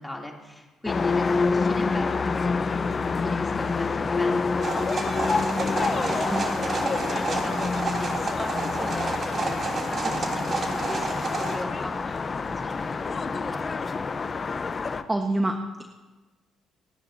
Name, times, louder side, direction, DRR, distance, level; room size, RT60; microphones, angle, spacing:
voice 1, 0.0-12.8 13.0-13.6, left 1 dB, 10° left, -1 dB, 3.1 m, -39 dB
sound 1, 0.9-15.0, left 4 dB, 40° left, 0.9 m, -27 dB
sound 2, 4.6-11.6, right 3 dB, 50° right, 3.1 m, -30 dB
voice 2, 15.1-15.8, right 1 dB, 20° right, 4 dB, 1.4 m, -26 dB
29.5 x 10.5 x 2.8 m, 1.2 s
supercardioid pair, 65°, 0 cm